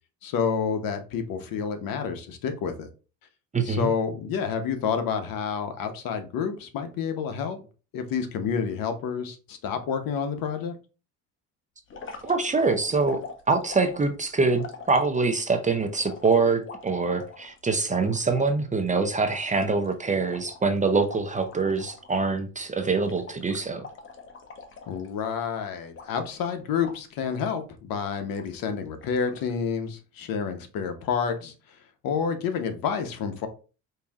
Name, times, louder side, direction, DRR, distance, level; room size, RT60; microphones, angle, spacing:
voice 1, 0.2-2.9 3.6-7.6 7.9-10.8 24.9-31.5 32.0-33.5, left 6 dB, 60° left, 0.9 m, -29 dB
voice 2, 3.5-3.9 12.2-13.2 13.5-23.8, right 4 dB, 20° right, 0.6 m, -24 dB
sound 1, 11.9-15.5 16.0-18.5 18.9-19.0 19.2-22.1 22.4-22.6 22.9-25.4 25.9-26.5 26.8-27.5 28.0-28.6 29.0-29.5, left 4 dB, 30° left, 0.8 m, -44 dB
4.8 x 2.7 x 2.4 m
supercardioid pair, 85°, 39 cm